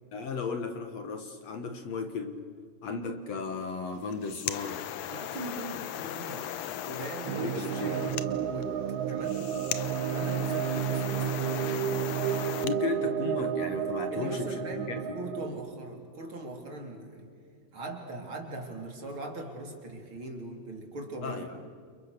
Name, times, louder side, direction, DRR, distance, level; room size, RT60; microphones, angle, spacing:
voice 1, 0.1-2.5 2.8-4.9 5.7-5.8 7.4-8.0 12.6-15.2 21.2-21.7, left 4 dB, 60° left, 7 dB, 2.0 m, -35 dB
sound 1, 4.0-12.8, left 11 dB, 85° left, 1.5 m, -38 dB
voice 2, 5.1-6.5 6.8-8.7 9.1-9.7 10.1-11.7 14.1-17.3 17.7-21.5, right 2 dB, 35° right, 2 dB, 3.7 m, -40 dB
sound 2, 7.3-15.5, right 9 dB, 90° right, 3.1 m, -31 dB
29.5 x 29.0 x 6.7 m, 2.1 s
omnidirectional pair, 4.4 m